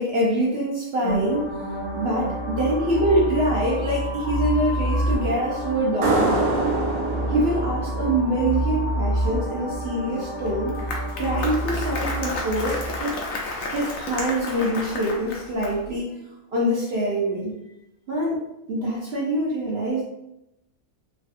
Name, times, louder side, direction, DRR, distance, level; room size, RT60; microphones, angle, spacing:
voice 1, 0.0-1.5 1.9-6.5 7.3-10.8 11.1-13.2 13.7-16.2 16.5-17.5 18.1-18.4 18.7-20.0, right 1 dB, 60° right, -4 dB, 0.7 m, -25 dB
sound 1, 1.0-13.0, equal, 10° right, 0.5 m, -28 dB
sound 2, 6.0-9.3, right 2 dB, 90° right, 1.1 m, -25 dB
Applause, 10.5-15.9, left 2 dB, 75° left, 1.0 m, -32 dB
3.1 x 2.6 x 2.5 m, 0.87 s
omnidirectional pair, 1.5 m